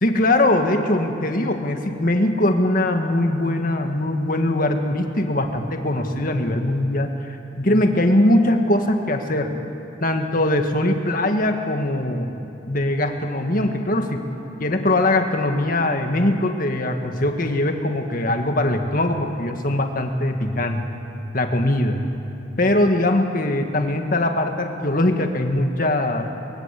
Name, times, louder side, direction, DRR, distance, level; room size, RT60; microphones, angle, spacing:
voice 1, 0.0-9.5 10.0-12.3 12.7-14.3 14.6-21.0 21.3-22.0 22.6-26.3, left 1 dB, 45° left, 5 dB, 1.8 m, -21 dB
24.0 x 21.0 x 8.5 m, 2.9 s
head